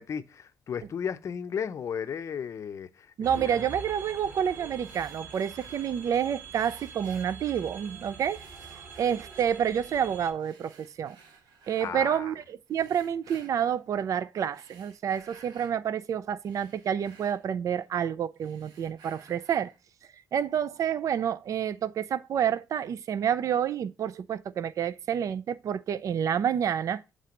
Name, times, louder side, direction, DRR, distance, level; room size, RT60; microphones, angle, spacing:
voice 1, 0.0-3.6 11.8-12.3, left 7 dB, 45° left, 0.6 m, -35 dB
sound 1, 3.2-10.3, right 5 dB, 35° right, 3.3 m, -44 dB
voice 2, 3.2-8.4 9.0-11.2 11.7-19.7 20.3-27.0, right 8 dB, 50° right, 0.4 m, -29 dB
sound 2, 4.8-6.1 6.5-7.9 8.3-9.8 10.4-12.0 12.7-13.8 14.4-15.8 16.2-18.0 18.3-19.8, right 5 dB, 80° right, 1.4 m, -56 dB
7.5 x 3.3 x 5.0 m
cardioid pair, 115°, 7 cm